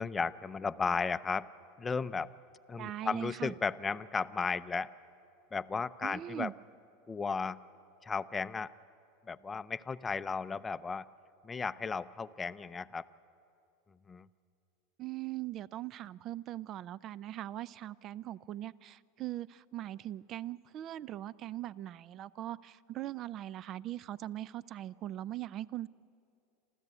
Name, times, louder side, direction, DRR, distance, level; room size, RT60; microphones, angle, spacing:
voice 1, 0.0-1.5 1.8-2.3 2.7-4.9 5.5-6.5 7.1-7.6 8.0-8.7 9.3-11.1 11.4-13.1 14.1-14.3, left 5 dB, 20° left, 14 dB, 0.5 m, -34 dB
voice 2, 2.8-3.5 6.0-6.5 15.0-25.9, right 13 dB, 40° right, 20 dB, 0.4 m, -40 dB
27.5 x 14.0 x 8.2 m, 2.6 s
supercardioid pair, 120°, 0 cm